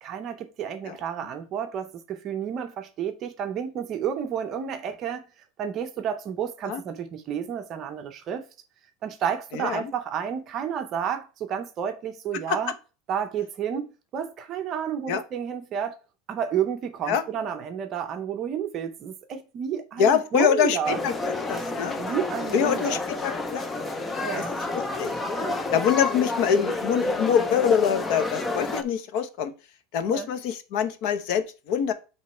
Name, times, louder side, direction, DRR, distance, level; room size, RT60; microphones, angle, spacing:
voice 1, 0.0-5.2 5.6-8.5 9.0-12.7 13.1-16.0 16.3-21.0 22.0-23.0 24.2-24.6 25.4-25.6 30.1-30.3, right 8 dB, 30° right, 0.6 m, -31 dB
voice 2, 9.5-9.9 12.5-12.6 15.1-15.2 17.1-17.2 20.0-22.0 22.5-23.9 24.4-24.5 25.0-25.1 25.7-29.5 29.9-31.9, left 8 dB, 55° left, 0.7 m, -25 dB
sound 1, 20.8-28.8, left 2 dB, 10° left, 0.5 m, -30 dB
7.8 x 3.1 x 4.3 m
supercardioid pair, 165°, 0 cm